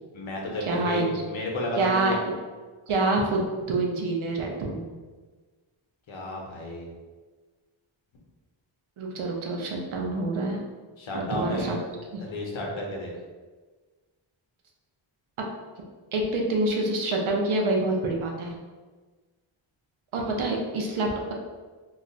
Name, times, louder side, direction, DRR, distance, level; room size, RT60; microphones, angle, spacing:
voice 1, 0.1-2.2 6.1-6.9 11.0-11.7 12.2-13.1, left 1 dB, 70° left, -1 dB, 0.8 m, -32 dB
voice 2, 0.7-1.1 1.8-2.2 2.9-4.8 9.0-10.6 11.1-11.8 12.1-12.3 16.1-18.5 20.1-21.3, right 2 dB, 75° right, 0 dB, 0.6 m, -26 dB
2.3 x 2.2 x 3.9 m, 1.4 s
wide cardioid pair, 155°, 49 cm